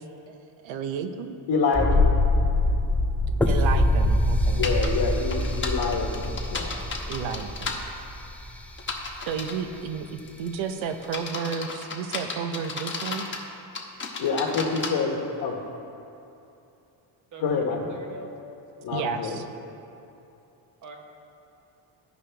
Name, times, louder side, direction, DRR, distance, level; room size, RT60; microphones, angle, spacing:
voice 1, 0.6-1.4 3.5-4.7 7.1-7.8 9.3-13.3 18.9-19.4, right 6 dB, 75° right, 8 dB, 0.8 m, -32 dB
voice 2, 1.5-2.2 4.5-6.8 7.2-7.3 14.2-15.6 17.4-17.8 18.8-19.4, left 4 dB, 55° left, -1 dB, 1.2 m, -27 dB
sound 1, 1.7-8.6 8.9-9.0, left 1 dB, 5° left, 0.3 m, -24 dB
sound 2, 4.6-4.9 5.3-7.8 8.8-9.6 10.2-10.5 11.0-13.4 13.7-14.9, left 4 dB, 25° left, 1.1 m, -33 dB
voice 3, 15.0-15.5 17.3-18.3 20.8-21.0, right 3 dB, 40° right, 2 dB, 1.2 m, -44 dB
14.5 x 5.2 x 3.3 m, 2.8 s
cardioid pair, 105°, 47 cm